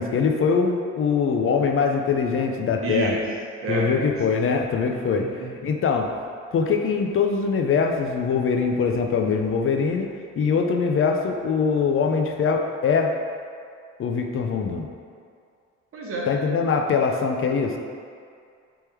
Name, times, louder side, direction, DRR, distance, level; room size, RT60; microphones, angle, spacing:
voice 1, 0.0-3.2 3.7-5.3 5.6-6.1 6.5-10.1 10.4-13.2 14.0-14.9 16.3-17.8, left 5 dB, 45° left, 3 dB, 0.5 m, -22 dB
voice 2, 2.8-3.2 3.6-3.9 5.1-5.7 15.9-16.3, right 3 dB, 45° right, -4 dB, 1.0 m, -29 dB
3.5 x 3.2 x 4.4 m, 2.3 s
cardioid pair, 90°, 30 cm